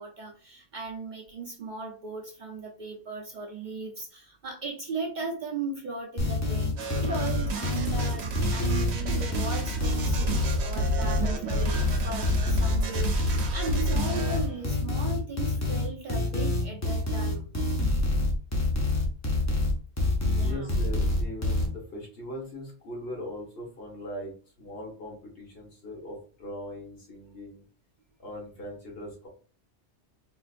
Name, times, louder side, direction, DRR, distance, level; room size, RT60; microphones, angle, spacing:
voice 1, 0.0-17.5 20.2-20.7, right 3 dB, 50° right, 0 dB, 0.6 m, -37 dB
sound 1, 6.2-21.7, left 2 dB, 20° left, 0.6 m, -26 dB
sound 2, 6.8-14.6, right 3 dB, 75° right, 1.0 m, -32 dB
voice 2, 20.4-27.6 28.2-29.3, left 1 dB, 60° left, -1 dB, 1.4 m, -40 dB
3.8 x 2.5 x 2.4 m, 0.40 s
omnidirectional pair, 1.2 m